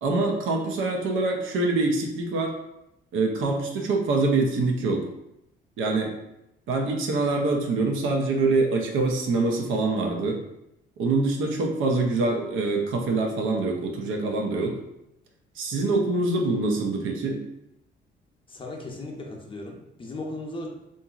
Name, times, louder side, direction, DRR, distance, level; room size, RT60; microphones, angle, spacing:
voice 1, 0.0-2.5 3.1-5.1 5.8-6.1 6.7-10.4 11.0-14.8 15.6-17.4, right 3 dB, 80° right, 2 dB, 0.5 m, -25 dB
voice 2, 18.5-20.7, left 2 dB, 25° left, 0 dB, 0.6 m, -36 dB
2.8 x 2.5 x 2.4 m, 0.86 s
cardioid pair, 90°, 20 cm